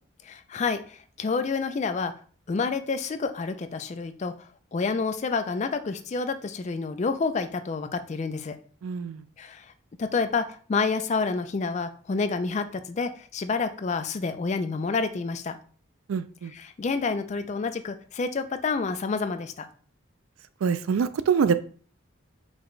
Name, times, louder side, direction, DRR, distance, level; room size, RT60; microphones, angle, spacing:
voice 1, 0.2-2.1 2.5-8.5 9.4-9.7 10.0-15.6 16.5-19.7, left 4 dB, 35° left, 9 dB, 0.3 m, -29 dB
voice 2, 8.8-9.2 16.1-16.5 20.6-21.5, right 6 dB, 85° right, 13 dB, 0.3 m, -25 dB
4.8 x 2.2 x 3.9 m, 0.43 s
head